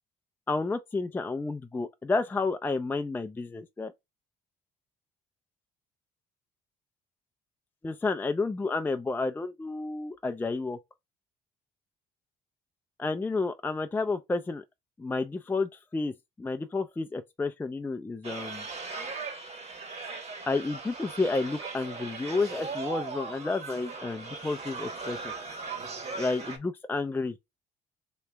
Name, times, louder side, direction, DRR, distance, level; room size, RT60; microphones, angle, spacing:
voice 1, 0.5-3.9 7.8-10.8 13.0-14.6 15.0-18.7 20.5-25.3 26.2-27.3, left 3 dB, 10° left, 0.4 m, -31 dB
sound 1, 18.2-26.6, right 4 dB, 40° right, 1.2 m, -38 dB
3.1 x 3.0 x 3.2 m
cardioid pair, 110°, 17 cm